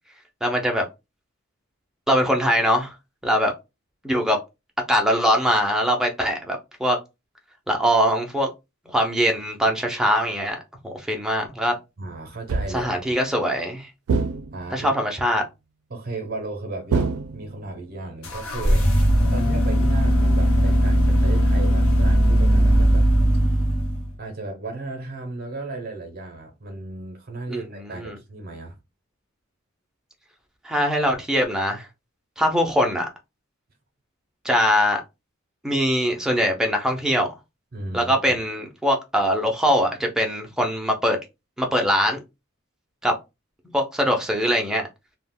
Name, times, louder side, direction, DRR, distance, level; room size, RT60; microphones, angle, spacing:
voice 1, 0.4-0.8 2.1-2.9 3.2-3.5 4.0-4.4 4.9-7.0 7.7-8.5 8.9-10.6 10.8-11.7 12.7-13.9 14.7-15.4 27.5-27.6 27.9-28.2 30.6-31.9 32.4-33.1 34.4-35.0 35.6-37.3 37.9-41.2 41.6-42.2 43.0-43.1 43.7-44.9, equal, 5° right, 0.5 m, -22 dB
voice 2, 12.0-12.9 14.5-14.9 15.9-18.8 19.3-23.1 24.2-28.8 37.7-38.4, right 2 dB, 45° right, 0.6 m, -34 dB
sound 1, 12.5-13.0 14.1-14.9 16.9-17.8, right 4 dB, 85° right, 0.4 m, -26 dB
sound 2, 18.2-24.1, equal, 75° left, 0.7 m, -18 dB
2.3 x 2.1 x 3.5 m
head